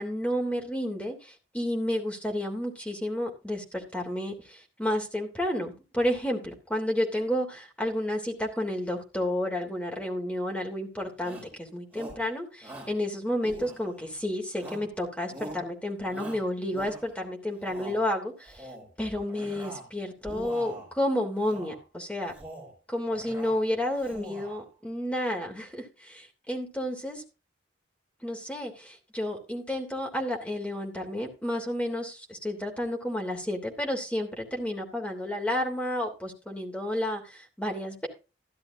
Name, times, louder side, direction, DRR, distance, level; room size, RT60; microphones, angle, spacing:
voice 1, 0.0-18.7 19.0-22.3 22.9-27.2 28.2-38.1, left 1 dB, 5° left, 1 dB, 3.0 m, -31 dB
Shout, 11.2-11.6 11.9-12.3 12.6-13.0 13.4-14.1 14.6-15.0 15.3-15.7 16.1-17.2 17.6-18.0 18.4-18.9 19.3-19.9 20.2-20.9 21.4-21.8 22.2-22.7 23.1-23.6 23.9-24.6, right 1 dB, 10° right, 5.5 m, -43 dB
14.5 x 11.5 x 2.6 m, 0.30 s
head